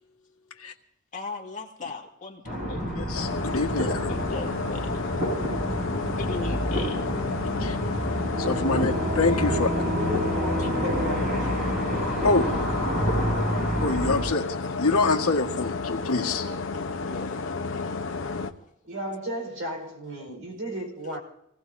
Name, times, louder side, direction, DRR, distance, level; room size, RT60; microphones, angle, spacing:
voice 1, 1.1-3.0 4.1-4.9 6.2-7.1 10.6-10.7 12.1-12.2 16.3-16.4 17.0-17.9, left 3 dB, 35° left, 0 dB, 2.2 m, -38 dB
sound 1, 2.4-14.2, equal, 45° right, 7.8 m, -28 dB
voice 2, 2.9-4.1 7.6-7.8 8.1-9.7 12.2-12.5 13.8-14.5 14.8-16.5 18.1-18.2, left 3 dB, 85° left, 2 dB, 1.9 m, -26 dB
sound 2, 3.1-18.5, left 4 dB, 60° left, 0.9 m, -31 dB
voice 3, 9.5-11.6 12.4-13.3 18.8-21.2, right 1 dB, 60° right, 2 dB, 4.8 m, -35 dB
26.0 x 18.0 x 2.8 m, 0.82 s
head